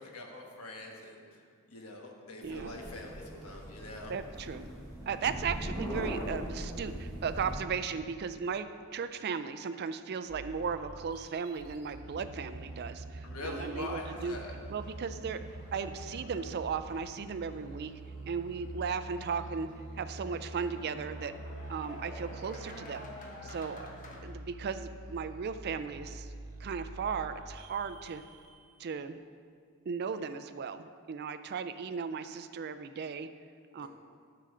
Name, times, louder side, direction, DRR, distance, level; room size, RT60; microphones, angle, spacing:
voice 1, 0.0-1.4 1.7-4.1 13.2-14.5 33.8-33.9, left 2 dB, 75° left, 1 dB, 1.1 m, -43 dB
sound 1, 2.4-7.5, equal, 15° left, 1.5 m, -40 dB
voice 2, 2.4-2.7 4.1-4.7 5.1-8.7 8.9-14.4 14.7-15.4 15.7-17.9 18.2-19.7 20.0-21.3 21.7-23.0 23.4-23.9 24.2-26.3 26.6-28.2 28.8-29.2 29.9-33.3 33.7-33.9, right 6 dB, 45° right, 11 dB, 0.3 m, -36 dB
sound 2, 10.3-28.8, right 2 dB, 75° right, 0.7 m, -46 dB
sound 3, 14.3-24.2, left 1 dB, 35° left, 1.0 m, -50 dB
9.8 x 6.8 x 3.8 m, 2.2 s
head